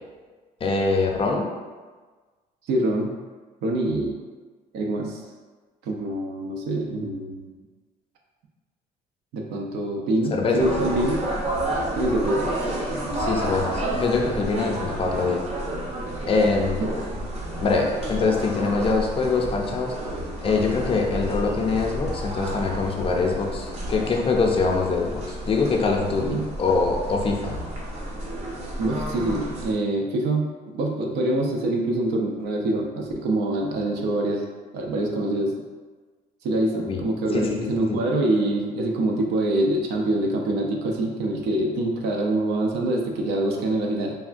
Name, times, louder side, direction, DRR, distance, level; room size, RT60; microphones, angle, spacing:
voice 1, 0.6-1.4 10.3-10.7 13.2-15.4 16.3-16.8 17.6-19.9 20.4-27.6 36.9-37.0 37.3-38.0, left 4 dB, 35° left, 0 dB, 0.5 m, -24 dB
voice 2, 2.7-3.1 3.6-4.2 4.7-5.2 5.8-7.5 9.3-11.2 12.0-12.5 16.8-17.0 26.2-26.5 28.8-34.4 34.7-35.5 36.4-44.2, right 1 dB, 75° right, 1 dB, 0.5 m, -25 dB
sound 1, 10.6-29.7, right 1 dB, 40° right, 0.7 m, -30 dB
3.5 x 2.2 x 2.5 m, 1.3 s
cardioid pair, 110°, 17 cm